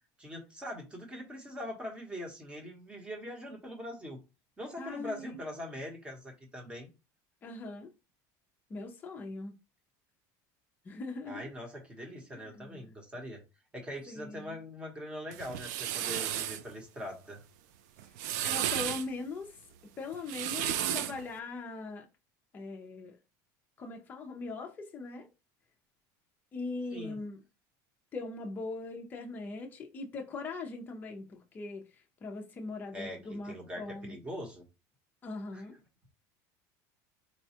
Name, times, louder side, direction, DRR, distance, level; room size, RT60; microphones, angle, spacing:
voice 1, 0.2-4.2 4.6-6.9 11.3-13.4 13.7-17.4 26.9-27.2 32.9-34.6 35.5-35.6, equal, 10° right, 0.9 m, -42 dB
voice 2, 4.8-5.4 7.4-7.9 8.7-9.6 10.8-11.5 12.3-12.9 14.1-14.6 18.4-19.6 20.0-22.1 22.5-23.2 23.8-25.3 26.5-27.4 28.1-34.2 35.2-35.8, left 3 dB, 20° left, 0.5 m, -41 dB
sound 1, 15.3-16.6 18.0-19.1 20.1-21.2, right 11 dB, 80° right, 0.4 m, -33 dB
4.1 x 2.2 x 2.8 m
cardioid pair, 160°, 9 cm